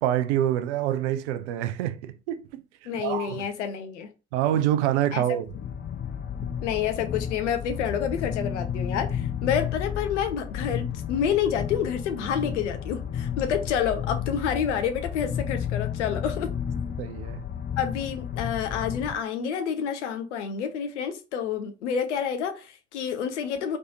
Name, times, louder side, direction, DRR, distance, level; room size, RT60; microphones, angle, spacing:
voice 1, 0.0-2.4 3.0-3.5 4.3-5.5 17.0-17.4, right 12 dB, 70° right, 0.6 m, -26 dB
voice 2, 2.8-4.1 5.1-5.2 6.6-16.5 17.8-23.8, left 8 dB, 75° left, 0.7 m, -28 dB
sound 1, 5.5-19.1, left 8 dB, 30° left, 0.7 m, -32 dB
4.2 x 3.3 x 2.8 m
figure-of-eight pair, 50°, 36 cm